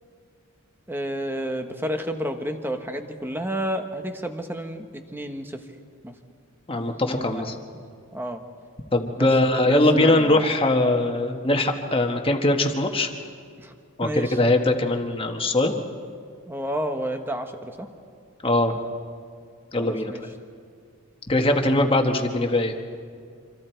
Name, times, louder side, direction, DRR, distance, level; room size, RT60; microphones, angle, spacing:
voice 1, 0.9-5.6 6.0-6.1 6.7-7.4 8.1-8.4 9.2-10.5 13.6-13.7 14.0-14.4 16.5-17.9 19.8-20.2, equal, 10° right, 6 dB, 1.3 m, -31 dB
voice 2, 6.7-7.5 8.9-13.1 14.0-15.7 18.4-18.7 19.7-20.1 21.3-22.7, left 2 dB, 25° left, 4 dB, 1.5 m, -21 dB
26.5 x 26.0 x 4.6 m, 2.2 s
head